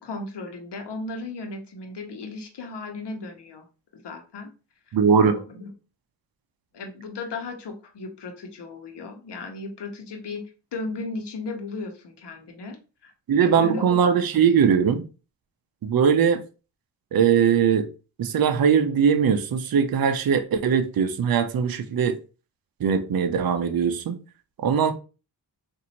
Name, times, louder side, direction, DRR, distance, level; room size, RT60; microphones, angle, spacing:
voice 1, 0.0-3.6 3.9-4.5 5.2-5.7 6.7-10.4 10.7-12.8 13.0-13.1 13.4-15.0, left 3 dB, 65° left, 1.0 m, -35 dB
voice 2, 4.9-5.3 13.3-15.0 15.8-16.4 17.1-17.9 18.2-22.1 22.8-24.2 24.6-24.9, right 7 dB, 55° right, 0.6 m, -20 dB
4.0 x 2.6 x 2.9 m
cardioid pair, 60°, 44 cm